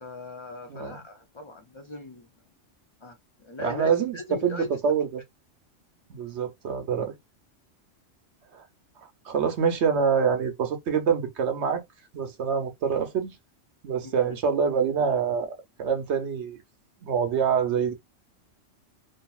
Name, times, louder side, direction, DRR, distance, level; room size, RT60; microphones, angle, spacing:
voice 1, 0.0-2.3 3.0-4.7 14.0-14.4, left 3 dB, 50° left, 0.3 m, -39 dB
voice 2, 3.6-5.2 6.1-7.1 9.2-11.8 12.1-13.3 13.8-15.5 15.8-16.6 17.0-17.9, right 6 dB, 65° right, 1.0 m, -25 dB
2.7 x 2.6 x 2.3 m
omnidirectional pair, 1.3 m